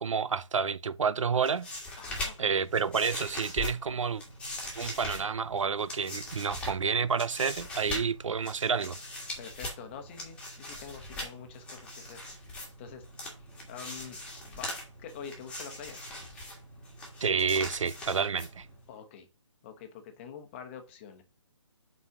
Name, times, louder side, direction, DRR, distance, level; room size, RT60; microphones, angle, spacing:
voice 1, 0.0-1.7 2.4-4.2 4.8-9.0 17.2-18.7, right 6 dB, 75° right, 0.7 m, -29 dB
sound 1, 1.3-18.9, left 2 dB, 5° left, 1.6 m, -41 dB
voice 2, 2.0-2.5 9.4-12.2 12.8-13.0 13.7-14.2 14.5-14.7 15.0-16.0 18.9-19.3 19.6-21.2, left 7 dB, 20° left, 1.1 m, -45 dB
5.7 x 5.3 x 4.8 m
hypercardioid pair, 155°, 16 cm